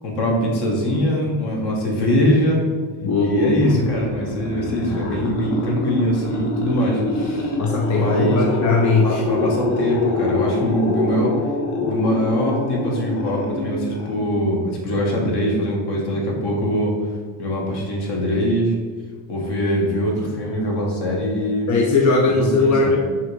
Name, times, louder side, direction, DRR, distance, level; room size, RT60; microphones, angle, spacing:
voice 1, 0.0-2.7 3.2-7.5 8.0-8.4 9.0-11.3 11.7-16.9 17.4-18.7 19.3-21.7 22.3-23.0, equal, 55° left, -1 dB, 1.3 m, -22 dB
voice 2, 3.0-3.8 7.6-9.2 21.7-23.0, left 3 dB, 40° left, 0 dB, 0.5 m, -19 dB
sound 1, 3.4-14.5, left 3 dB, 75° left, 1.1 m, -25 dB
5.6 x 2.6 x 3.1 m, 1.5 s
supercardioid pair, 80°, 49 cm